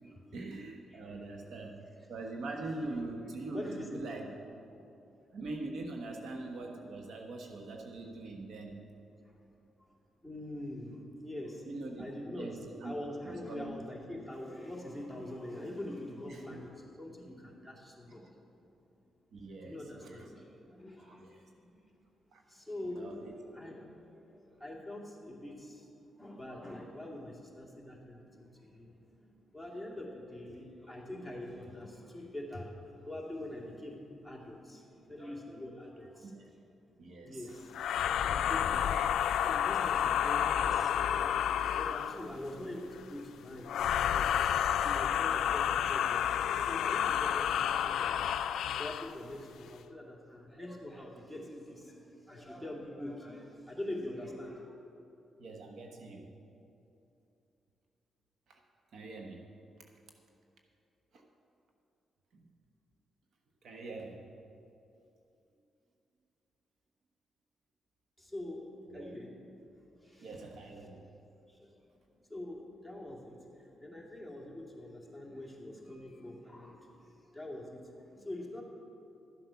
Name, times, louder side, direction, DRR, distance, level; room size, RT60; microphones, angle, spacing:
voice 1, 0.3-1.8 2.1-4.3 5.3-8.8 11.6-12.9 13.3-13.7 16.3-16.6 19.3-20.3 21.0-21.4 22.3-22.4 22.9-23.3 36.2-36.5 37.0-37.5 55.4-56.3 58.5-58.6 58.9-59.4 61.1-61.2 62.3-62.5 63.6-64.3 68.9-69.1 70.2-71.1, right 2 dB, 70° right, 2 dB, 1.1 m, -43 dB
voice 2, 3.5-4.0 9.2-9.4 10.2-11.7 12.0-12.5 12.8-18.4 19.6-21.7 22.5-36.3 37.1-54.7 68.2-69.3 69.8-70.4 71.5-72.0 72.3-78.6, left 1 dB, 5° right, -2 dB, 2.3 m, -44 dB
sound 1, 37.7-42.3 43.7-49.1, left 9 dB, 85° left, 0.3 m, -30 dB
12.5 x 7.8 x 5.7 m, 2.8 s
cardioid pair, 90°, 0 cm